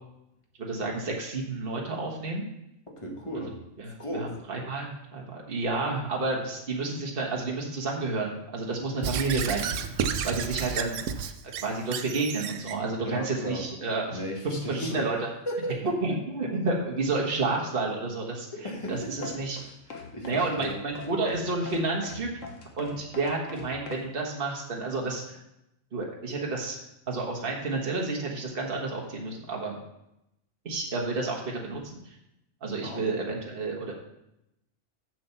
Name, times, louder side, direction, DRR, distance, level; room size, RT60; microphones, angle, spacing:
voice 1, 0.6-2.5 3.8-9.8 10.2-11.0 11.6-15.3 16.0-18.5 18.9-19.6 20.2-22.3 22.8-25.4 25.9-29.8 30.6-32.2 32.6-33.9, right 3 dB, 45° right, -1 dB, 1.6 m, -30 dB
voice 2, 2.9-3.6 3.8-4.4 13.0-13.7 14.1-15.1 15.5-15.9 18.6-20.8 32.8-33.3, equal, 25° left, -1 dB, 1.8 m, -36 dB
Squeak / Writing, 9.0-12.8, right 7 dB, 75° right, 1.0 m, -32 dB
sound 1, 18.9-24.1, left 4 dB, 80° left, 1.6 m, -43 dB
7.6 x 7.3 x 5.6 m, 0.85 s
omnidirectional pair, 1.3 m